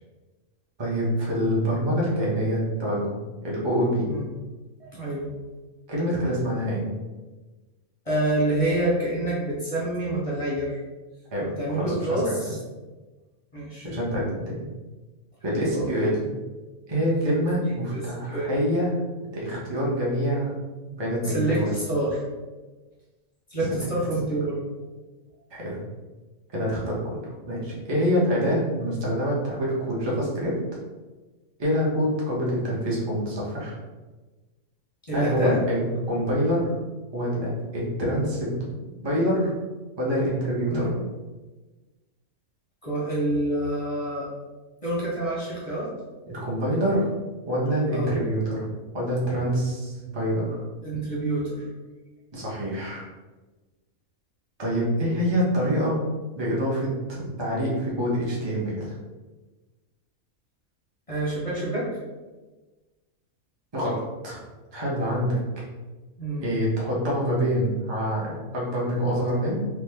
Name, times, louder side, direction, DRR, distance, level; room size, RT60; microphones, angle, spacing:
voice 1, 0.8-3.1 3.4-4.1 5.9-6.9 11.3-12.4 13.8-14.7 15.4-16.2 16.9-19.0 19.3-20.6 20.9-21.7 25.5-25.8 26.5-30.5 31.6-33.7 35.1-36.7 37.1-38.6 39.0-39.5 40.0-40.9 46.3-47.1 47.5-48.6 48.9-50.6 52.3-53.0 54.6-56.0 56.3-58.9 63.7-64.4 64.7-65.4 66.4-69.6, equal, 25° right, -5 dB, 0.6 m, -26 dB
voice 2, 4.8-5.3 8.1-10.8 11.6-12.6 13.5-13.9 15.5-15.9 17.9-18.0 18.3-18.5 21.2-22.2 23.5-24.6 35.1-35.6 40.7-40.9 42.8-44.3 44.8-45.9 47.9-48.1 50.8-51.7 61.1-61.9 66.2-66.5, right 1 dB, 35° left, -6 dB, 0.6 m, -27 dB
3.0 x 2.2 x 3.4 m, 1.2 s
omnidirectional pair, 1.5 m